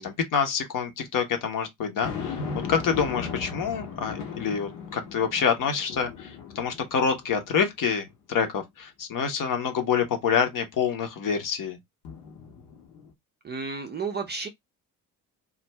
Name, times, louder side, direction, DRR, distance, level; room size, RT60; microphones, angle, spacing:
voice 1, 0.0-2.4 2.7-11.8, left 6 dB, 40° left, 0.9 m, -27 dB
sound 1, 2.0-7.6 8.1-8.2 12.0-13.1, left 5 dB, 65° left, 1.0 m, -37 dB
voice 2, 13.4-14.5, right 4 dB, 20° right, 0.5 m, -32 dB
2.5 x 2.3 x 3.1 m
figure-of-eight pair, 50°, 49 cm